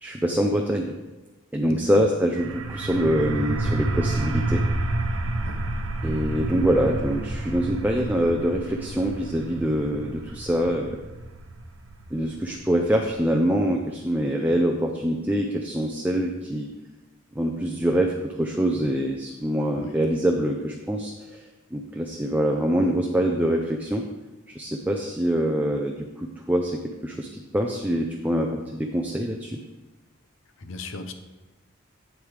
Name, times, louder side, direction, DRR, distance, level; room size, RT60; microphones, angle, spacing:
voice 1, 0.0-0.9 1.5-4.6 6.0-11.0 12.1-16.7 17.4-24.0 24.5-29.6, equal, 10° right, 1 dB, 0.5 m, -25 dB
sound 1, 2.4-13.8, right 2 dB, 80° right, 0.8 m, -30 dB
voice 2, 30.6-31.1, left 2 dB, 70° left, 7 dB, 0.8 m, -36 dB
8.9 x 8.1 x 3.4 m, 1.1 s
head